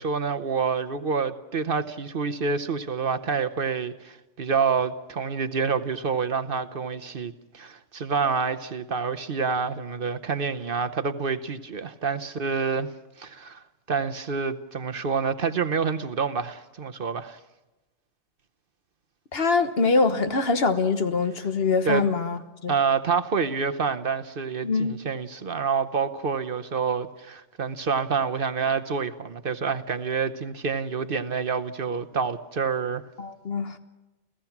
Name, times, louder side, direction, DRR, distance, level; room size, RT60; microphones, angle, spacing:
voice 1, 0.0-12.9 13.2-13.6 13.9-17.4 21.8-22.1 22.7-33.1, right 5 dB, 55° right, 1.0 m, -27 dB
voice 2, 19.3-22.7 24.6-25.0 33.2-33.8, left 4 dB, 55° left, 1.4 m, -24 dB
29.5 x 15.5 x 5.9 m
omnidirectional pair, 1.2 m